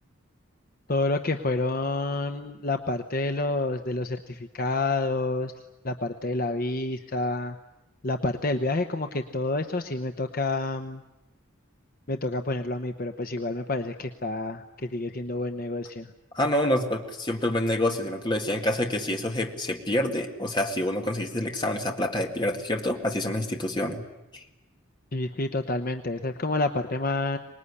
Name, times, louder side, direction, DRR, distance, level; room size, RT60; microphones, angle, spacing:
voice 1, 0.9-5.5 5.8-7.6 8.0-11.0 12.1-16.1 25.1-27.4, left 2 dB, 45° left, 6 dB, 0.9 m, -28 dB
voice 2, 16.3-24.0 24.3-24.4, left 1 dB, 20° left, 3 dB, 2.1 m, -27 dB
25.0 x 20.5 x 9.9 m, 0.97 s
head